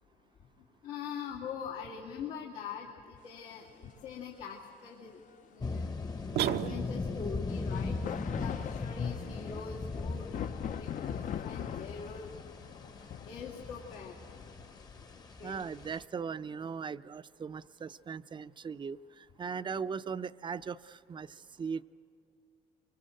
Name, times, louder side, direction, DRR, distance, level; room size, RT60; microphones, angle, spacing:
voice 1, 0.8-5.2 5.5-6.0 6.4-8.0 8.4-10.4 10.8-12.3 13.3-14.2 15.0-15.1 15.4-15.6, left 6 dB, 85° left, -2 dB, 2.5 m, -43 dB
sound 1, 3.6-3.7 7.5-15.8, left 9 dB, 50° left, 0.6 m, -42 dB
sound 2, 5.6-16.0, left 4 dB, 25° left, 0.9 m, -39 dB
sound 3, 6.4-7.3, right 11 dB, 70° right, 0.7 m, -32 dB
voice 2, 15.4-21.8, right 6 dB, 30° right, 13 dB, 0.5 m, -39 dB
24.5 x 24.0 x 7.8 m, 2.5 s
cardioid pair, 110°, 17 cm